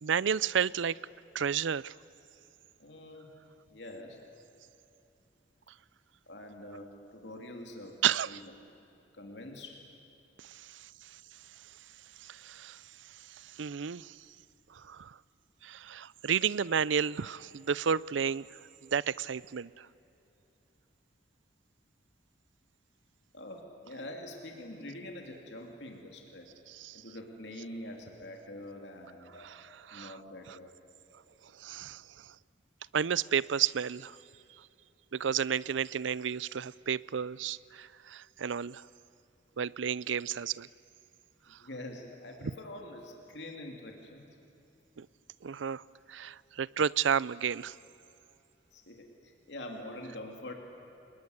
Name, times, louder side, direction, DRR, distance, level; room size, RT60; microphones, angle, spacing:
voice 1, 0.0-1.0 1.3-1.9 8.0-8.4 10.4-10.8 12.2-12.8 13.4-14.1 14.7-15.2 15.6-18.5 18.9-19.9 26.8-27.0 29.4-29.6 29.9-30.1 31.6-32.0 32.9-34.2 35.1-38.8 39.6-40.7 45.0-45.1 45.4-45.8 46.1-47.7, right 7 dB, 85° right, 21 dB, 0.5 m, -31 dB
voice 2, 2.8-3.3 3.7-4.2 6.3-8.5 9.1-9.9 23.3-26.5 26.9-29.5 29.9-30.7 41.5-44.2 48.7-50.5, left 1 dB, 65° left, 2 dB, 2.9 m, -45 dB
28.0 x 20.5 x 9.7 m, 2.9 s
head